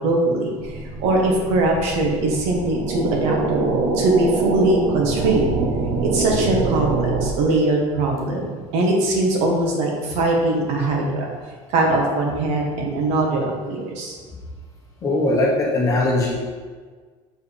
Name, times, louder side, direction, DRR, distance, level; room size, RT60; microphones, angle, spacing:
voice 1, 0.0-5.5 6.0-11.3 11.7-14.2, right 2 dB, 60° right, 0 dB, 1.4 m, -21 dB
sound 1, 0.6-7.6, right 3 dB, 80° right, 0.7 m, -25 dB
voice 2, 15.0-16.3, left 2 dB, 25° left, -3 dB, 1.2 m, -20 dB
6.6 x 4.8 x 3.4 m, 1.5 s
cardioid pair, 160°, 13 cm